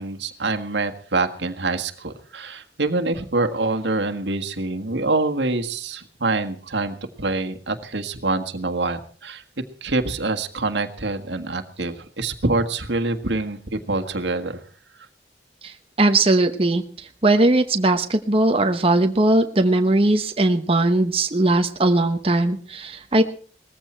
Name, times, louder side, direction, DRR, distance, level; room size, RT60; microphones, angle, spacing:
voice 1, 0.0-9.4 9.8-14.6, right 3 dB, 85° right, 6 dB, 1.7 m, -25 dB
voice 2, 15.6-23.2, right 2 dB, 30° right, 6 dB, 1.0 m, -19 dB
19.5 x 15.0 x 4.4 m, 0.43 s
head